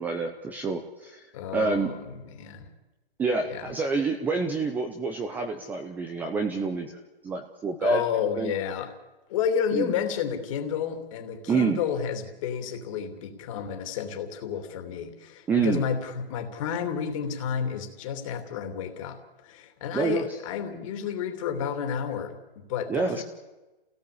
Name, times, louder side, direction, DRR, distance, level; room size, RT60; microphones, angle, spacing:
voice 1, 0.0-1.3 1.5-1.9 3.2-8.0 8.4-8.6 9.7-9.9 11.5-11.8 15.5-15.8 19.9-20.4 22.9-23.2, right 4 dB, 5° right, 5 dB, 0.7 m, -27 dB
voice 2, 1.3-2.7 3.5-3.7 7.8-8.9 9.3-23.2, left 7 dB, 35° left, 6 dB, 2.9 m, -31 dB
28.0 x 17.5 x 8.5 m, 1.1 s
hypercardioid pair, 165°, 29 cm